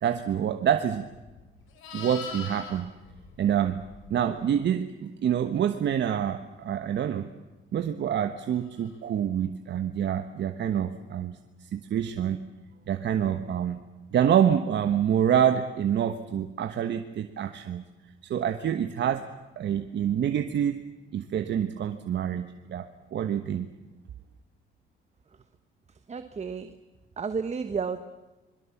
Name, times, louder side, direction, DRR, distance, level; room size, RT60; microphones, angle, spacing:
voice 1, 0.0-1.1 1.9-2.9 3.4-3.8 4.1-7.3 7.7-12.5 12.9-13.8 14.1-17.8 18.2-19.3 19.6-20.8 21.1-23.7, right 9 dB, 65° right, 7 dB, 1.3 m, -27 dB
Livestock farm animals working animals, 1.1-4.4 8.7-8.9, left 6 dB, 90° left, 5.0 m, -43 dB
voice 2, 26.1-26.7 27.2-28.0, right 5 dB, 35° right, 10 dB, 1.3 m, -31 dB
26.5 x 22.0 x 7.2 m, 1.1 s
cardioid pair, 90°, 20 cm